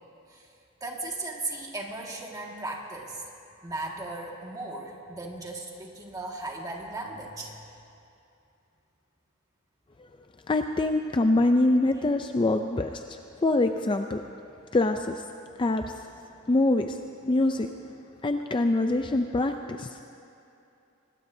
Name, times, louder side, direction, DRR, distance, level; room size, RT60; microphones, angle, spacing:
voice 1, 0.8-3.2 3.6-7.6, right 2 dB, 20° right, -1 dB, 1.9 m, -36 dB
voice 2, 10.5-14.2 14.7-15.2 15.6-16.0 16.5-17.0 17.3-17.7 18.2-20.0, left 2 dB, 25° left, 6 dB, 0.4 m, -24 dB
25.0 x 20.0 x 2.7 m, 2.7 s
head